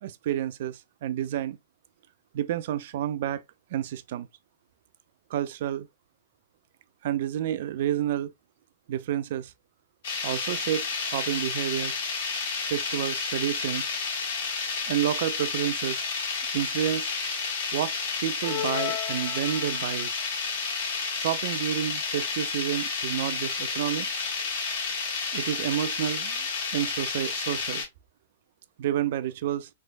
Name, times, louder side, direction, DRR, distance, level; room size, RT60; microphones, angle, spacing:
voice 1, 0.0-1.6 2.3-3.4 3.7-4.3 5.3-5.9 7.0-8.3 8.9-9.5 10.2-11.9 12.7-13.9 14.9-16.0 16.5-17.1 17.7-17.9 18.2-20.1 21.1-24.1 25.3-26.5 26.7-27.8 28.8-29.7, right 11 dB, 50° right, 0.3 m, -29 dB
sound 1, 10.0-27.9, left 4 dB, 50° left, 1.3 m, -31 dB
sound 2, 18.4-20.1, left 11 dB, 35° left, 0.4 m, -34 dB
3.4 x 2.9 x 2.5 m
figure-of-eight pair, 105°, 0 cm